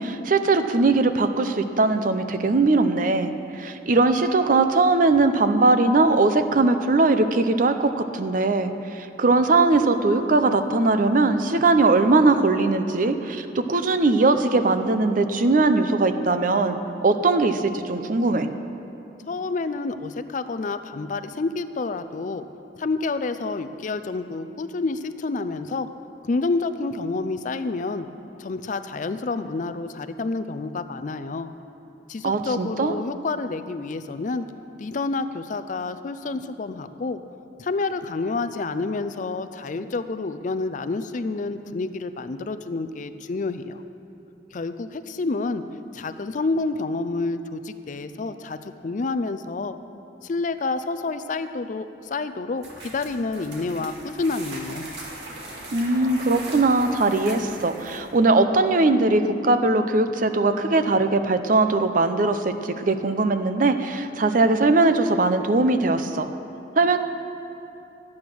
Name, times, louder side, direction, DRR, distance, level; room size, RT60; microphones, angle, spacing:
voice 1, 0.0-3.3 3.6-18.5 32.2-32.9 55.7-66.3 66.8-67.0, right 3 dB, 50° right, 9 dB, 0.6 m, -20 dB
voice 2, 19.3-22.5 22.8-25.9 26.2-28.1 28.4-31.5 32.1-34.5 34.8-37.2 37.6-43.8 44.5-45.6 45.9-49.7 50.2-54.9, left 3 dB, 45° left, 10 dB, 0.4 m, -28 dB
sound 1, 52.6-58.2, right 1 dB, 75° right, 2.0 m, -39 dB
12.5 x 8.6 x 6.1 m, 2.9 s
head